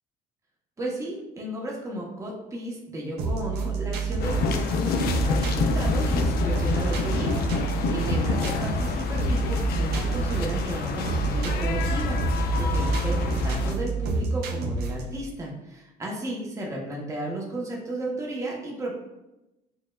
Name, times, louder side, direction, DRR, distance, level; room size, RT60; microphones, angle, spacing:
voice 1, 0.8-18.9, right 1 dB, 20° right, -3 dB, 0.8 m, -34 dB
sound 1, 3.2-15.2, right 4 dB, 75° right, 0.5 m, -29 dB
sound 2, 4.2-13.7, left 3 dB, 65° left, 0.4 m, -27 dB
6.2 x 2.2 x 2.2 m, 0.97 s
cardioid pair, 110°, 17 cm